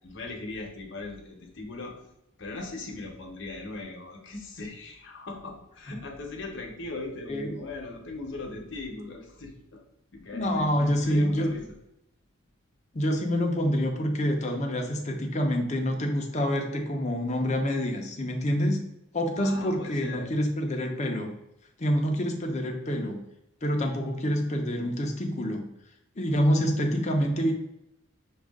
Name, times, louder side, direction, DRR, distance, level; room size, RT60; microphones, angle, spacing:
voice 1, 0.0-2.0 2.4-9.8 10.1-11.7 19.4-20.3, left 2 dB, 55° left, 1 dB, 1.0 m, -39 dB
voice 2, 10.3-11.5 12.9-18.8 19.1-21.3 21.8-23.2 23.6-25.6 26.2-27.5, equal, 30° left, 3 dB, 0.6 m, -27 dB
6.1 x 2.4 x 3.6 m, 0.85 s
head